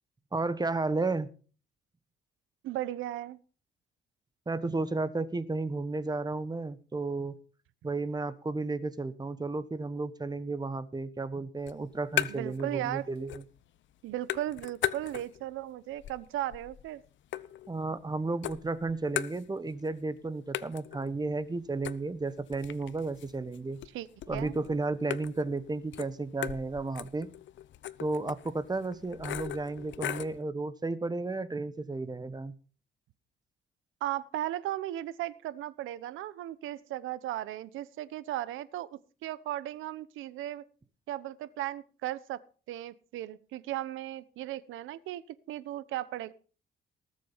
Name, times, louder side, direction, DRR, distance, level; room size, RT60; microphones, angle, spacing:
voice 1, 0.3-1.3 4.5-7.4 7.8-13.4 17.7-23.8 24.3-27.3 28.0-32.5, right 3 dB, 20° right, 14 dB, 1.3 m, -33 dB
voice 2, 2.6-3.4 12.3-13.0 14.0-17.0 23.9-24.5 34.0-38.9 39.2-40.6 41.1-42.4 42.7-46.3, right 13 dB, 90° right, 17 dB, 0.9 m, -36 dB
sound 1, 11.6-12.7 13.0-13.6 13.9-15.5 15.9-18.1 18.4-19.9 20.1-20.2 20.5-30.4, left 11 dB, 70° left, 0.8 m, -38 dB
19.5 x 7.6 x 5.6 m, 0.39 s
cardioid pair, 90°, 20 cm